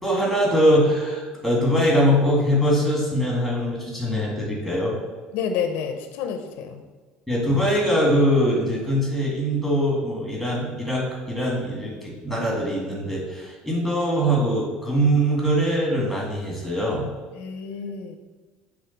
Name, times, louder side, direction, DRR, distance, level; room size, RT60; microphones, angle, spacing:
voice 1, 0.0-5.0 7.3-17.1, equal, 5° right, -3 dB, 2.0 m, -22 dB
voice 2, 5.3-6.8 17.4-18.2, left 7 dB, 65° left, 7 dB, 0.6 m, -29 dB
6.8 x 3.6 x 5.8 m, 1.4 s
cardioid pair, 155°, 3 cm